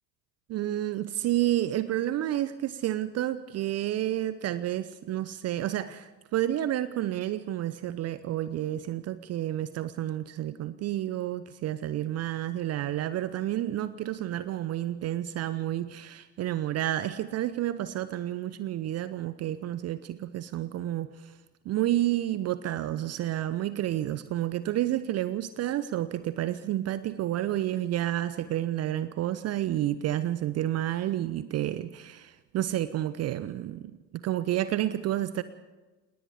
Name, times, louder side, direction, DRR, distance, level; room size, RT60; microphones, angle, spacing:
voice 1, 0.5-21.3 21.7-33.8 34.1-35.4, right 13 dB, 30° right, 14 dB, 0.8 m, -30 dB
28.0 x 19.0 x 5.0 m, 1.2 s
figure-of-eight pair, 75°, 49 cm